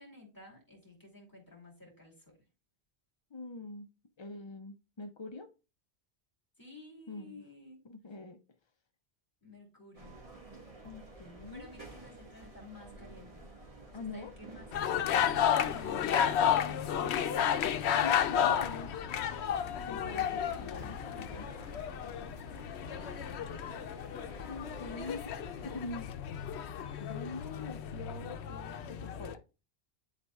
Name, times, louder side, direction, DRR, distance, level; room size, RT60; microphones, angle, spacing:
voice 1, 0.0-2.3 6.6-7.8 9.4-10.2 11.5-13.4 13.9-17.1 19.8-20.6 22.8-23.4, left 2 dB, 20° left, -3 dB, 2.8 m, -53 dB
voice 2, 3.3-3.9 4.2-5.5 7.1-7.4 7.8-8.4 10.8-11.7 13.9-14.3 17.6-18.9 19.9-21.5 24.4-25.3 25.6-26.1 27.0-29.4, left 3 dB, 40° left, 5 dB, 0.4 m, -44 dB
sound 1, 9.9-25.8, right 2 dB, 35° right, 1.8 m, -51 dB
sound 2, 14.7-29.3, left 9 dB, 90° left, 0.8 m, -32 dB
10.5 x 4.2 x 2.3 m, 0.30 s
omnidirectional pair, 1.1 m